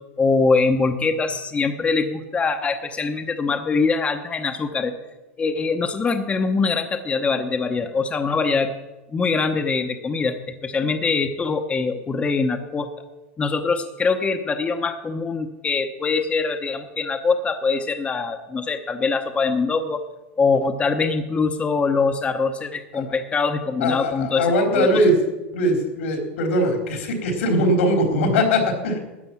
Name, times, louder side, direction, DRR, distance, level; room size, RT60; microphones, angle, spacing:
voice 1, 0.2-4.9 5.4-8.7 9.1-10.4 10.6-12.9 13.4-20.0 20.4-24.5 24.7-25.0, left 4 dB, 20° left, 5 dB, 0.9 m, -23 dB
voice 2, 23.8-25.1 25.5-29.0, equal, 85° left, 3 dB, 3.7 m, -20 dB
12.0 x 8.8 x 7.3 m, 1.1 s
supercardioid pair, 125°, 7 cm